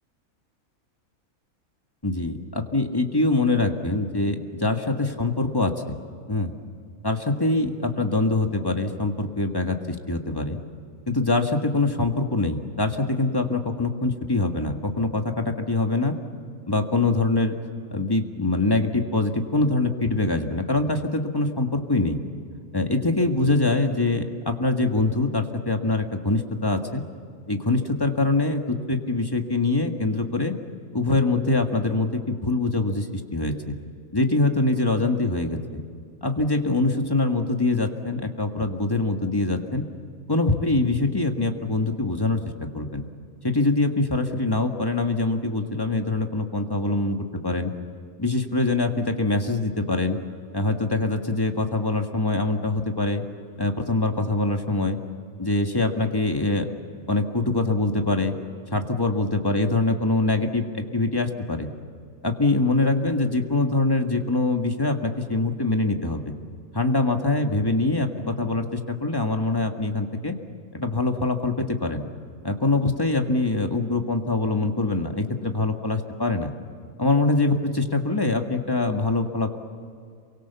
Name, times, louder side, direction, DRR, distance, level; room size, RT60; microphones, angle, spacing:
voice 1, 2.0-5.9 6.3-6.5 7.0-10.6 11.1-16.1 16.7-17.5 17.9-22.2 22.7-27.0 27.5-30.5 30.9-33.8 34.1-35.6 36.2-39.8 40.3-42.4 42.7-43.0 43.4-47.7 48.2-50.2 50.5-53.2 53.6-55.0 55.4-56.7 57.1-58.3 58.7-61.7 62.2-66.2 66.7-70.3 70.7-72.0 72.4-76.5 77.0-79.6, left 2 dB, 15° left, 4 dB, 1.7 m, -24 dB
28.0 x 24.0 x 7.0 m, 2.3 s
omnidirectional pair, 1.5 m